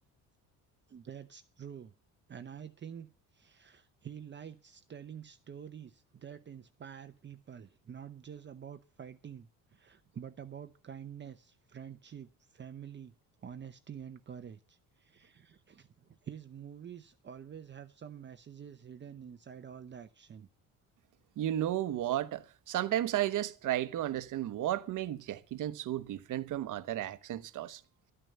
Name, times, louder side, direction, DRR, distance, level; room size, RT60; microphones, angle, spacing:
voice 1, 0.9-1.9 2.3-13.1 13.4-20.5, right 8 dB, 30° right, 0.8 m, -48 dB
voice 2, 21.4-27.8, right 12 dB, 60° right, 1.0 m, -33 dB
12.5 x 9.2 x 6.6 m
cardioid pair, 120°, 36 cm